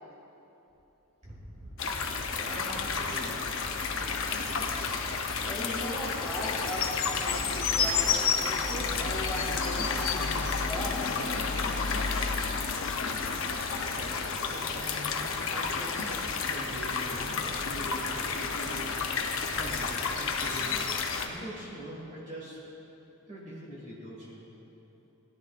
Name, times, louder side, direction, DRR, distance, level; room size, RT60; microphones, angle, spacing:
sound 1, 1.2-21.1, equal, 15° right, 1.1 m, -47 dB
sound 2, 1.8-21.3, left 5 dB, 60° left, 0.8 m, -31 dB
voice 1, 2.3-3.7 13.9-20.8 21.2-22.7 23.3-24.5, equal, 35° right, -5 dB, 2.0 m, -43 dB
voice 2, 5.4-11.0, left 1 dB, ahead, -7 dB, 2.4 m, -38 dB
17.0 x 10.5 x 2.5 m, 3.0 s
head